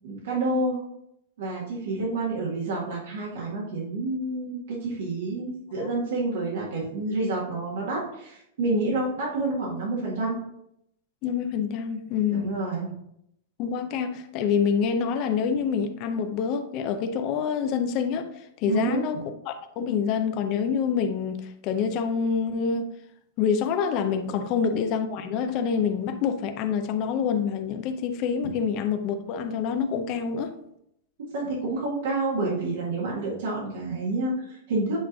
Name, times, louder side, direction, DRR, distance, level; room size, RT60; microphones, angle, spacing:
voice 1, 0.0-0.8 1.4-10.4 12.3-13.0 18.7-19.2 24.4-24.5 28.4-28.5 31.3-35.0, right 2 dB, 70° right, 1.7 m, -29 dB
voice 2, 11.2-12.5 13.6-18.3 18.6-19.2 19.5-22.9 23.4-30.5, left 6 dB, 35° left, 0.5 m, -26 dB
8.1 x 3.1 x 3.8 m
supercardioid pair, 165°, 0 cm